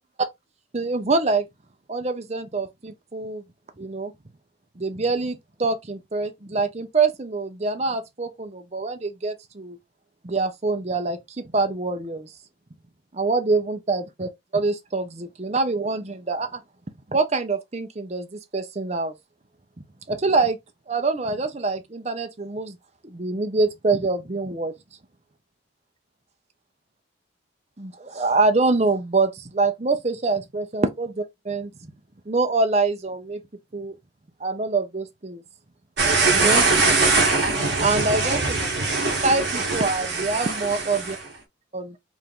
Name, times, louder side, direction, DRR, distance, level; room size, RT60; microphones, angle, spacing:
voice 1, 0.7-1.4 1.9-3.4 3.8-4.1 4.8-9.8 10.2-12.3 13.1-16.6 17.1-19.1 20.1-20.6 20.9-22.8 23.0-24.7 27.8-31.9 32.3-33.4 33.7-33.9 34.4-35.4 36.3-36.6 37.8-38.6 39.2-41.2 41.7-42.0, right 3 dB, 35° right, 0.6 m, -25 dB
sound 1, 36.0-41.2, right 3 dB, 55° right, 1.9 m, -22 dB
4.9 x 2.6 x 3.7 m
head